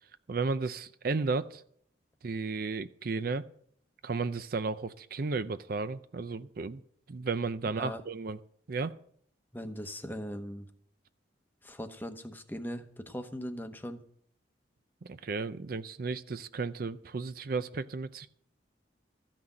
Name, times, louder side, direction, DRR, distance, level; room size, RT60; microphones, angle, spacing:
voice 1, 0.3-1.6 2.2-3.5 4.0-6.8 7.1-8.4 8.7-9.0 15.0-18.3, right 4 dB, 50° right, 12 dB, 0.5 m, -33 dB
voice 2, 9.5-10.7 11.6-14.0, equal, 10° left, 7 dB, 0.9 m, -39 dB
14.0 x 6.0 x 8.7 m, 0.64 s
head